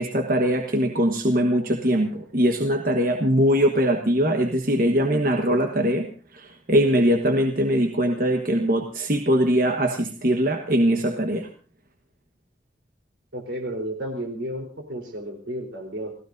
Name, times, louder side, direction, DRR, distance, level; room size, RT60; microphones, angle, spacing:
voice 1, 0.0-6.1 6.3-11.5, equal, 50° right, 4 dB, 1.3 m, -21 dB
voice 2, 13.3-16.2, right 1 dB, 80° right, 3 dB, 3.8 m, -32 dB
28.5 x 15.5 x 2.6 m, 0.41 s
head